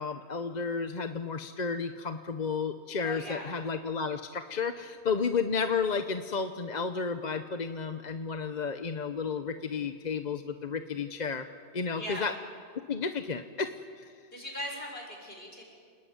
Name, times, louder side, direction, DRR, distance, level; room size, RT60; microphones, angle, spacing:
voice 1, 0.0-11.5 11.7-12.3 12.9-14.1, left 5 dB, 45° left, 8 dB, 1.0 m, -32 dB
voice 2, 3.0-3.6 12.0-12.3 14.3-15.6, equal, 65° left, -1 dB, 6.8 m, -39 dB
29.0 x 20.5 x 9.4 m, 2.1 s
omnidirectional pair, 1.1 m